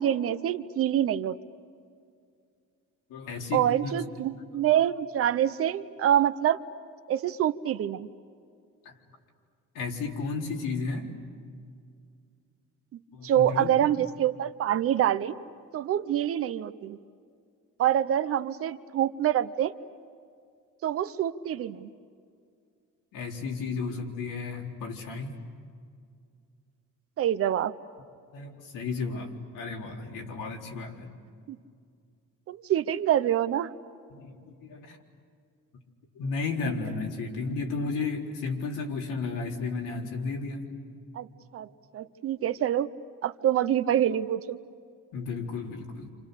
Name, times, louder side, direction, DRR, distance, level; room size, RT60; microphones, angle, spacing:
voice 1, 0.0-1.4 3.5-6.6 7.1-8.1 13.2-15.4 15.7-17.0 17.8-19.7 20.8-21.9 27.2-27.7 31.5-31.6 32.5-33.7 41.1-41.3 41.5-42.9 43.2-44.6, right 11 dB, 45° right, 12 dB, 0.8 m, -26 dB
voice 2, 3.1-4.0 8.8-8.9 9.7-11.1 13.1-13.8 23.1-25.4 28.3-31.1 34.1-35.0 36.1-40.7 45.1-46.1, left 4 dB, 80° left, 0 dB, 4.2 m, -33 dB
29.5 x 28.0 x 6.8 m, 2.3 s
cardioid pair, 180°, 32 cm